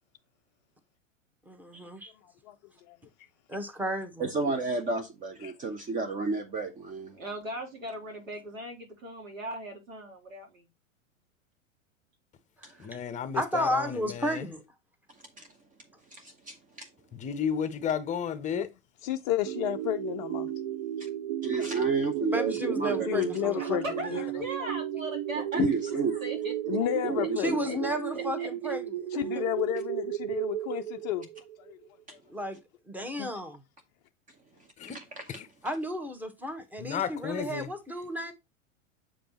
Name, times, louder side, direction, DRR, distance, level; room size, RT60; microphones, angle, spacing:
voice 1, 1.5-2.1 3.5-4.2 12.6-13.0 13.3-14.6 22.3-23.8 24.1-24.2 27.4-29.4 32.3-32.6 32.9-33.6 35.6-38.3, equal, 5° right, 1.2 m, -33 dB
voice 2, 2.2-2.6 2.9-3.3 5.4-5.5 19.0-20.5 21.6-21.7 23.1-23.8 24.1-24.7 25.6-25.7 26.7-27.5 29.1-31.3 31.6-31.8 33.2-33.3, left 13 dB, 35° left, 0.4 m, -32 dB
voice 3, 4.2-7.2 12.6-12.7 15.4-15.5 16.1-16.9 21.4-23.0 25.5-26.1 26.7-26.8 27.0-27.6 34.8-35.4, right 3 dB, 20° right, 0.8 m, -31 dB
voice 4, 7.1-10.6 23.6-26.8 27.7-27.8 28.1-28.8, right 1 dB, 80° right, 3.6 m, -39 dB
voice 5, 12.8-14.4 17.1-18.7 34.8-35.0 35.3-35.5 36.8-37.7, left 7 dB, 20° left, 0.8 m, -33 dB
sound 1, 19.4-31.9, right 12 dB, 45° right, 0.5 m, -34 dB
7.4 x 5.1 x 2.9 m
figure-of-eight pair, 95°, 40 cm